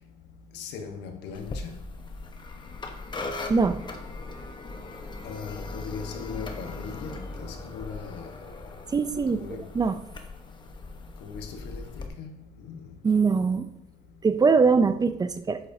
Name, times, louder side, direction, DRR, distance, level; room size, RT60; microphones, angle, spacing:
voice 1, 0.5-1.5 5.2-8.2 9.3-9.6 11.2-11.8 12.2-12.3 12.7-12.8, left 6 dB, 85° left, 1.2 m, -38 dB
sound 1, 1.3-12.1, left 2 dB, 25° left, 1.0 m, -39 dB
voice 2, 3.5-3.8 8.9-9.4 9.7-10.0 13.0-13.7 14.2-15.6, right 5 dB, 25° right, 0.5 m, -22 dB
8.3 x 7.9 x 2.7 m
cardioid pair, 110°, 17 cm